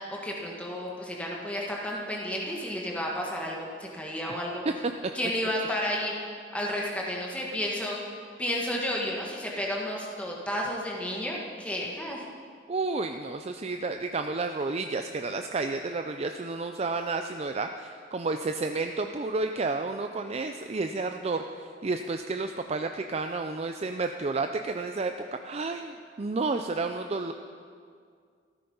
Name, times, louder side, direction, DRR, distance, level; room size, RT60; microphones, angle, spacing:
voice 1, 0.1-4.6 5.1-6.1 6.5-8.0 8.4-12.2, equal, 10° left, -2 dB, 1.5 m, -32 dB
voice 2, 12.7-27.3, right 3 dB, 35° right, 6 dB, 0.5 m, -31 dB
14.0 x 13.0 x 5.5 m, 2.1 s
head